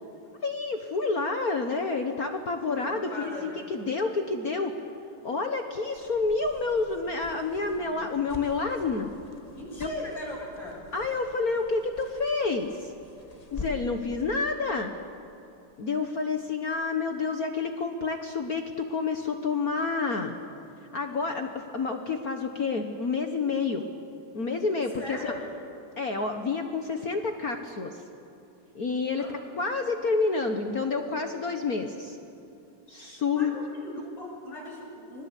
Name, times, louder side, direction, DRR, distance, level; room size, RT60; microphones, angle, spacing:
voice 1, 0.4-4.7 5.2-9.1 9.8-9.9 10.9-12.9 13.5-14.9 15.8-20.3 20.9-23.8 24.3-25.3 26.0-28.0 28.7-32.2 32.9-33.5, left 4 dB, 65° left, 5 dB, 0.8 m, -29 dB
voice 2, 2.8-3.6 9.6-10.8 25.0-25.5 29.2-29.6 33.3-35.2, left 1 dB, 45° left, -3 dB, 8.7 m, -39 dB
sound 1, 5.9-14.0, left 3 dB, 30° left, 0.7 m, -46 dB
26.0 x 21.5 x 8.4 m, 2.8 s
omnidirectional pair, 3.7 m